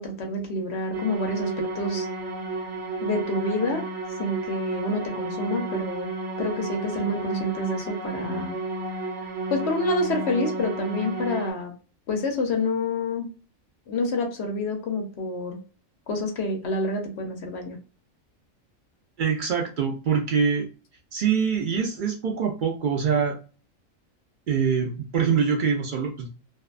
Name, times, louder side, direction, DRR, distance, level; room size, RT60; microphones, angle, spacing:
voice 1, 0.0-1.5 1.7-2.1 3.0-3.8 4.2-6.1 6.4-8.5 9.5-11.7 12.1-13.3 13.9-15.6 16.1-17.8, left 2 dB, 60° left, 3 dB, 0.9 m, -28 dB
sound 1, 0.9-11.5, right 2 dB, 50° right, 0.9 m, -32 dB
voice 2, 19.2-20.7 21.1-23.4 24.5-26.3, right 6 dB, 70° right, 1 dB, 0.4 m, -24 dB
2.6 x 2.1 x 2.3 m, 0.36 s
omnidirectional pair, 1.4 m